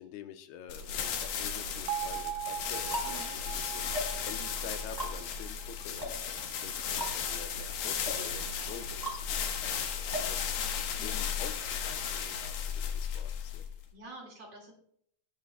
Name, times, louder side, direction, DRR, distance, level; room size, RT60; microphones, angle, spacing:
voice 1, 0.0-10.5 11.0-13.7, left 8 dB, 85° left, 8 dB, 2.7 m, -47 dB
sound 1, 0.7-13.8, left 7 dB, 70° left, 2.6 m, -35 dB
Bell, 1.9-6.0, right 12 dB, 90° right, 1.7 m, -40 dB
sound 2, 2.6-11.1, equal, 5° right, 3.1 m, -41 dB
voice 2, 11.0-11.3 13.9-14.7, right 2 dB, 45° right, -1 dB, 2.7 m, -48 dB
19.5 x 7.9 x 2.2 m, 0.67 s
omnidirectional pair, 4.5 m